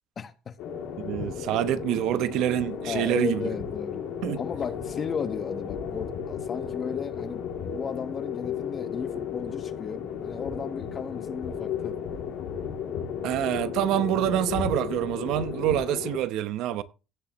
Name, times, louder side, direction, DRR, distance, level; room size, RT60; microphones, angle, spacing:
voice 1, 0.2-0.6 2.9-4.1 4.4-12.0, left 6 dB, 35° left, 1.2 m, -35 dB
sound 1, 0.6-16.2, left 7 dB, 85° left, 2.7 m, -34 dB
voice 2, 1.0-3.4 4.2-4.4 13.2-16.8, right 12 dB, 75° right, 0.8 m, -26 dB
16.5 x 7.0 x 3.1 m
cardioid pair, 135°, 0 cm